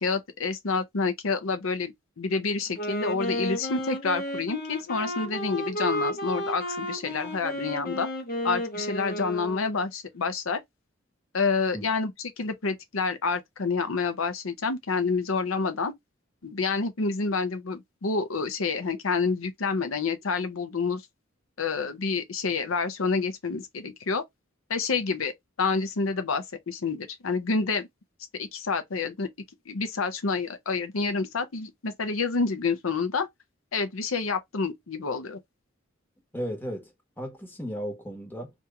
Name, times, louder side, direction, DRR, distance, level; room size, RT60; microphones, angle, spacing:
voice 1, 0.0-8.1 8.4-10.6 11.3-12.1 12.4-15.9 16.4-21.0 21.6-24.2 24.7-25.3 25.6-27.9 28.3-29.3 29.7-33.3 33.7-35.4, left 4 dB, 85° left, 0.7 m, -28 dB
Wind instrument woodwind instrument, 2.7-9.8, equal, 45° left, 1.0 m, -32 dB
voice 2, 36.3-36.9 37.2-38.5, equal, 10° left, 1.2 m, -35 dB
2.9 x 2.6 x 3.4 m
head